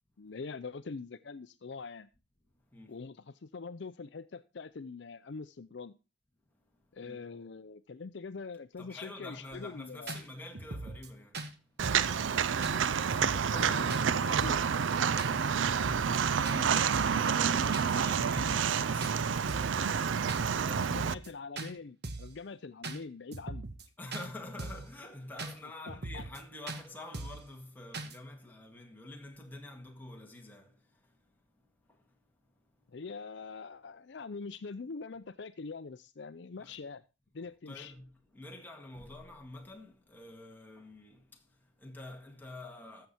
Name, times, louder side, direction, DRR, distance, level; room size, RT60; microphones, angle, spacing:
voice 1, 0.2-2.1 2.9-5.9 6.9-10.2 13.3-14.6 20.7-23.7 25.9-26.2 32.9-37.0 37.3-37.9, left 4 dB, 60° left, 0.5 m, -44 dB
voice 2, 6.5-7.3 8.8-13.2 16.0-20.9 24.0-32.9 36.6-36.7 37.7-43.1, left 2 dB, 10° left, 1.8 m, -48 dB
sound 1, 9.5-9.6 10.1-10.2 10.5-11.1 11.3-11.5 11.8-12.1 12.6-12.8 13.1-13.6 13.9-14.0 14.4-14.7 15.2-15.3 15.7-16.2 16.5-16.6 16.9-17.2 17.7-17.9 18.2-18.7 19.0-19.2 19.5-19.8 20.3-20.4 20.8-21.3 21.6-21.7 22.0-22.3 22.8-23.0 23.3-23.8 24.1-24.3 24.6-24.9 25.4-25.5 25.9-26.4 26.7-26.8 27.1-27.5 27.9-28.2, right 2 dB, 55° right, 1.3 m, -40 dB
Walk footsteps, 11.8-21.1, right 7 dB, 75° right, 0.5 m, -29 dB
14.5 x 6.9 x 4.3 m
head